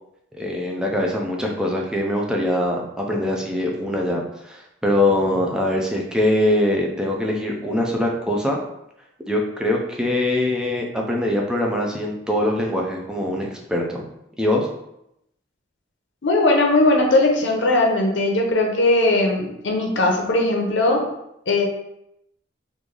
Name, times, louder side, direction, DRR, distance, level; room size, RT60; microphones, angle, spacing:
voice 1, 0.4-8.6 9.3-14.1 14.4-14.7, left 1 dB, 5° right, -1 dB, 0.4 m, -23 dB
voice 2, 16.2-21.0 21.5-21.6, left 2 dB, 70° left, 1 dB, 0.7 m, -19 dB
3.1 x 2.5 x 3.7 m, 0.81 s
head